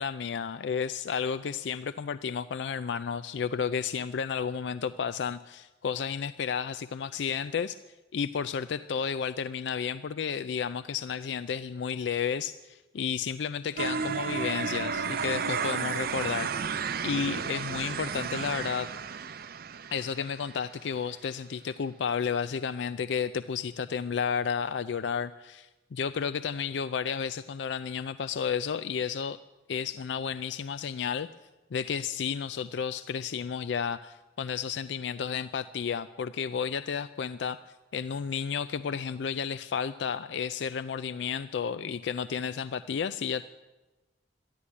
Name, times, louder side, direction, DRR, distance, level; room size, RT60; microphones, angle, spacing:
voice 1, 0.0-7.8 8.1-18.9 19.9-29.4 29.7-31.3 31.7-37.6 37.9-43.4, left 6 dB, 80° left, 12 dB, 0.4 m, -32 dB
sound 1, 13.8-20.7, right 6 dB, 55° right, 0.5 m, -33 dB
13.0 x 11.5 x 9.6 m, 1.1 s
head